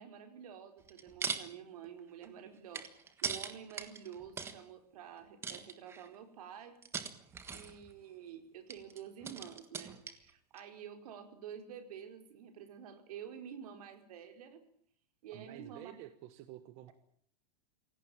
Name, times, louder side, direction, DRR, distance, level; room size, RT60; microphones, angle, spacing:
voice 1, 0.0-2.9 3.2-6.8 7.5-14.6 15.2-15.9, right 8 dB, 65° right, 7 dB, 5.1 m, -49 dB
sound 1, 0.8-1.5 1.8-4.6 5.4-6.2 6.8-7.9 8.7-10.3 10.6-10.7, right 6 dB, 10° right, 1.5 m, -40 dB
voice 2, 15.3-16.9, right 13 dB, 30° right, 11 dB, 1.2 m, -50 dB
26.0 x 17.5 x 8.9 m, 0.62 s
supercardioid pair, 175°, 21 cm